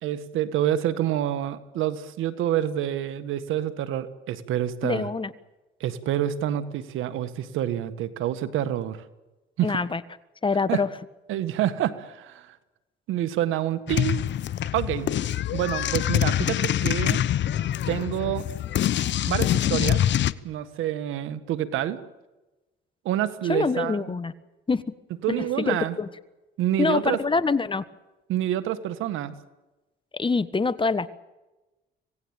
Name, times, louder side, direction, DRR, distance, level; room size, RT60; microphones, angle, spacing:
voice 1, 0.0-5.1 5.8-9.0 9.6-9.8 10.7-10.8 11.3-12.6 13.1-14.2 14.7-15.1 15.5-17.2 17.9-18.4 19.3-20.0 20.4-22.0 23.0-24.2 25.2-26.0 26.6-27.2 28.3-29.3, right 11 dB, 90° right, 12 dB, 1.7 m, -27 dB
voice 2, 4.8-5.3 9.6-10.0 10.4-10.9 23.5-24.3 24.7-24.8 25.3-26.1 26.8-27.8 30.1-31.1, left 4 dB, 25° left, 14 dB, 1.4 m, -25 dB
sound 1, 13.9-20.3, left 11 dB, 65° left, 0.9 m, -25 dB
26.0 x 18.0 x 9.0 m, 1.1 s
cardioid pair, 90°, 20 cm